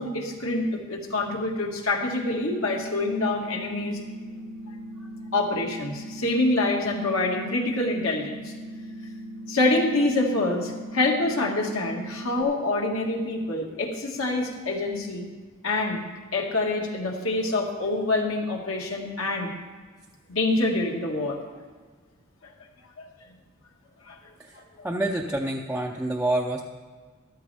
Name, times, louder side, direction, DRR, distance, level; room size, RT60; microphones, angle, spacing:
voice 1, 0.0-4.0 5.3-8.5 9.5-15.3 15.6-16.0 16.3-19.5 20.3-21.4 23.0-23.1 24.1-24.2, left 2 dB, 65° left, 0 dB, 1.8 m, -26 dB
sound 1, 2.4-12.4, right 1 dB, 75° right, 1.0 m, -39 dB
voice 2, 24.8-26.6, right 1 dB, 5° right, -1 dB, 0.6 m, -27 dB
13.5 x 12.5 x 3.4 m, 1.5 s
head